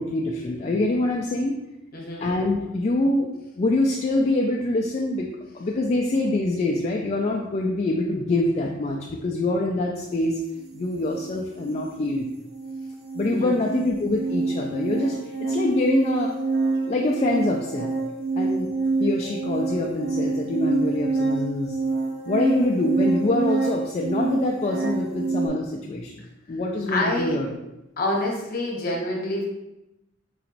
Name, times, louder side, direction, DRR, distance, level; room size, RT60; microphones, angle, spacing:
voice 1, 0.0-1.6 2.2-3.3 3.6-5.3 5.5-10.4 10.7-12.3 13.1-16.3 16.9-17.9 18.4-18.7 19.0-21.8 22.2-26.2 26.5-27.5, left 2 dB, 35° left, -1 dB, 0.4 m, -25 dB
voice 2, 1.9-2.3 13.2-13.6 26.9-27.4 28.0-29.5, left 1 dB, 50° left, -1 dB, 0.9 m, -27 dB
sound 1, 10.7-10.8 11.1-25.5, right 3 dB, 65° right, 0.6 m, -27 dB
4.5 x 3.9 x 2.5 m, 0.93 s
head